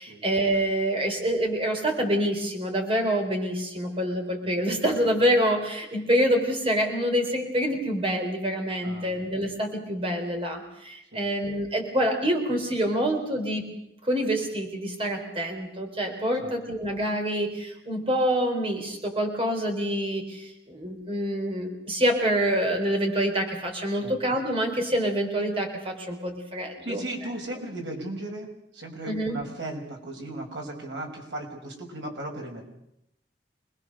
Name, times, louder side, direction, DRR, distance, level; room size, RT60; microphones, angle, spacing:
voice 1, 0.0-13.7 14.0-27.1 29.0-29.4, equal, 30° right, 3 dB, 3.9 m, -26 dB
voice 2, 8.8-9.2 11.1-11.3 16.3-16.5 24.0-24.2 26.8-32.6, right 1 dB, 75° right, 1 dB, 5.5 m, -36 dB
26.5 x 20.0 x 6.6 m, 0.81 s
head